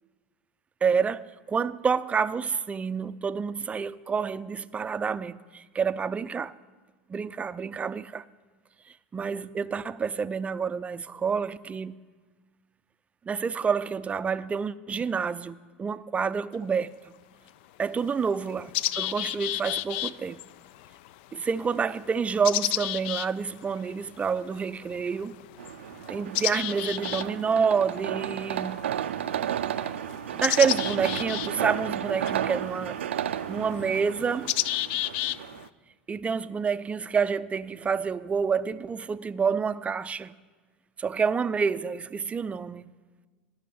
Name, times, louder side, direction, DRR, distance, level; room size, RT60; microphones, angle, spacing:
voice 1, 0.8-6.5 7.1-8.2 9.1-11.9 13.3-16.9 17.8-18.7 19.0-20.4 21.3-25.4 26.1-28.8 30.3-33.0 33.5-34.5 36.1-40.3 41.0-42.9, right 6 dB, 20° right, 0.4 m, -28 dB
sound 1, 16.5-16.6 17.5-17.6 18.0-35.7, left 15 dB, 65° left, 0.3 m, -34 dB
sound 2, 25.6-35.7, right 10 dB, 85° right, 0.4 m, -33 dB
11.5 x 6.4 x 8.4 m
hypercardioid pair, 95°, 6 cm